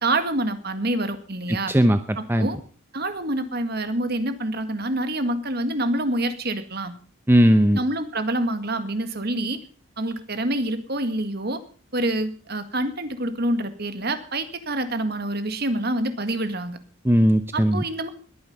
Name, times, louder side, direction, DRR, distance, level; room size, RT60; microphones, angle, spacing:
voice 1, 0.0-1.7 2.2-2.6 2.9-6.9 7.7-9.6 10.0-11.6 11.9-16.8 17.5-18.1, right 1 dB, 50° right, 9 dB, 1.9 m, -26 dB
voice 2, 1.7-2.5 7.3-7.8 17.0-17.8, equal, 10° right, 9 dB, 0.7 m, -18 dB
21.0 x 9.6 x 5.5 m, 0.42 s
head